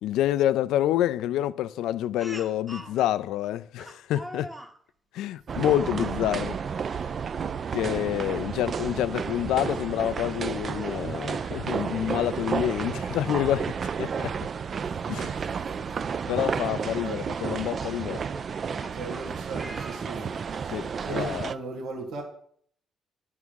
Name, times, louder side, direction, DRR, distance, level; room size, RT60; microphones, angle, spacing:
voice 1, 0.0-4.5 5.1-6.6 7.7-14.3 15.1-15.4 16.3-18.2 20.7-21.5, left 12 dB, 90° left, 0.3 m, -28 dB
Speech, 2.2-3.0 3.8-4.8 5.7-6.0 7.3-7.5 8.0-8.1 9.7-9.8 10.6-11.5 12.8-12.9 13.2-13.3 15.2-15.3 16.0-16.2 17.3-20.6, equal, 10° right, 0.9 m, -44 dB
sound 1, 5.5-21.6, right 6 dB, 50° right, 0.3 m, -32 dB
voice 2, 15.5-16.2 17.0-17.2 18.9-20.4 21.1-22.2, right 3 dB, 80° right, 1.4 m, -37 dB
10.0 x 3.6 x 6.2 m
cardioid pair, 90°, 0 cm